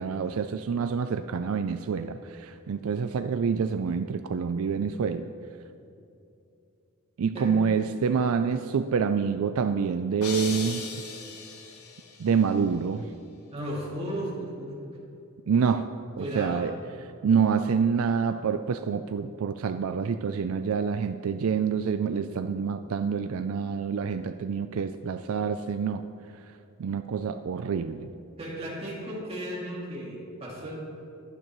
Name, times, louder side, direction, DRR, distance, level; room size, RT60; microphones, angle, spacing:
voice 1, 0.0-5.3 7.2-10.9 12.2-13.1 15.5-15.9 16.2-16.7 17.2-26.0 26.8-28.1, right 6 dB, 70° right, 10 dB, 0.4 m, -27 dB
voice 2, 7.3-7.7 13.5-14.9 16.2-16.7 28.4-30.8, equal, 25° right, -4 dB, 2.4 m, -35 dB
sound 1, 10.2-12.3, left 5 dB, 90° left, 1.6 m, -38 dB
22.0 x 9.3 x 3.1 m, 2.7 s
head